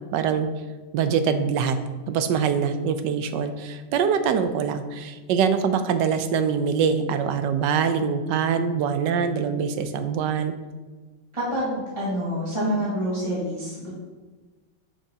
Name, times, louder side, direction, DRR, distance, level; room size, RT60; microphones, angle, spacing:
voice 1, 0.1-0.5 0.9-1.8 2.1-10.6, right 6 dB, 80° right, 9 dB, 1.2 m, -24 dB
voice 2, 11.3-13.9, equal, 15° right, -8 dB, 1.8 m, -27 dB
8.0 x 5.9 x 2.8 m, 1.3 s
omnidirectional pair, 1.9 m